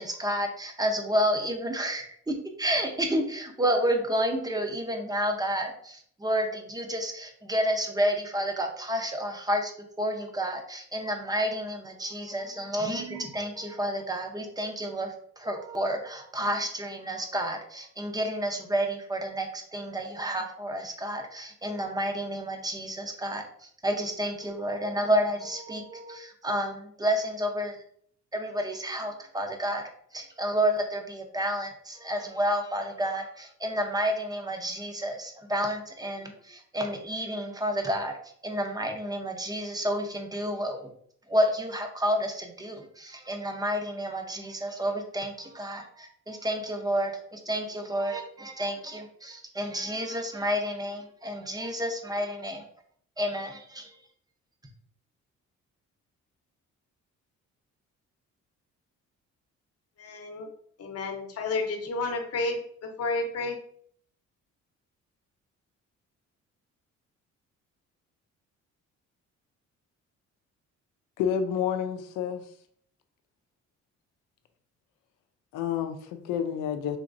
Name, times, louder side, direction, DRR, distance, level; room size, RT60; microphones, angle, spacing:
voice 1, 0.0-9.7 10.0-27.8 28.3-29.8 30.1-38.1 38.4-40.9 41.3-52.6 53.2-53.9, equal, 15° right, 4 dB, 0.6 m, -30 dB
voice 2, 60.0-60.5 60.8-63.6, left 3 dB, 55° left, 4 dB, 0.8 m, -31 dB
voice 3, 71.2-72.4 75.5-77.0, left 8 dB, 90° left, 8 dB, 0.5 m, -29 dB
3.5 x 2.9 x 2.5 m, 0.62 s
cardioid pair, 90°, 30 cm